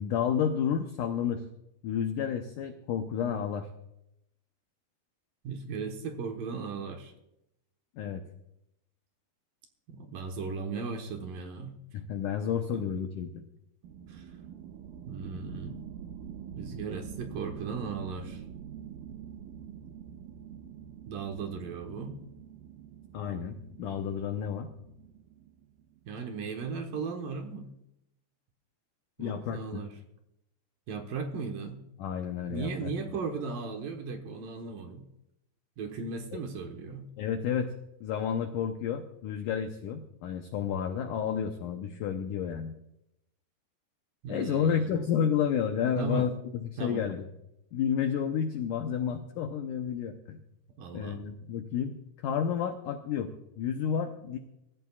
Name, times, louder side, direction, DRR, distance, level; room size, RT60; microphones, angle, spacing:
voice 1, 0.0-1.4 1.8-3.7 8.0-8.2 11.9-13.4 23.1-24.7 29.2-29.8 32.0-32.9 37.2-37.7 38.0-42.8 44.3-47.3 47.7-50.4 50.9-52.0 52.2-54.4, left 8 dB, 85° left, 6 dB, 1.8 m, -31 dB
voice 2, 5.4-7.1 9.9-11.8 12.7-12.8 14.1-14.2 15.1-15.8 16.6-18.4 21.1-22.2 26.1-27.7 29.2-29.9 30.9-31.8 32.5-35.0 35.8-37.1 44.2-44.9 46.0-46.3 46.8-47.1 50.8-51.2, right 4 dB, 65° right, 4 dB, 2.5 m, -36 dB
sound 1, 13.8-26.1, right 8 dB, 85° right, 1.8 m, -46 dB
24.0 x 14.0 x 2.4 m, 0.84 s
omnidirectional pair, 4.9 m